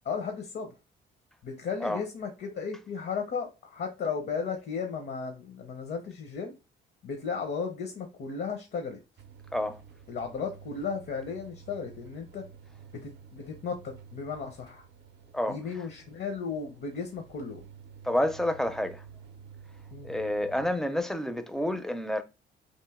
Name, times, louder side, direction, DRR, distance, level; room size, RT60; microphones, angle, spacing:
voice 1, 0.1-0.7 1.4-6.5 7.0-9.0 10.1-12.5 12.9-14.8 15.5-17.6 19.9-20.1, left 5 dB, 55° left, 0.7 m, -35 dB
sound 1, 9.2-20.7, right 6 dB, 60° right, 0.5 m, -51 dB
voice 2, 18.0-19.0 20.0-22.2, left 1 dB, ahead, 0.4 m, -29 dB
3.0 x 2.6 x 3.4 m
cardioid pair, 90°, 20 cm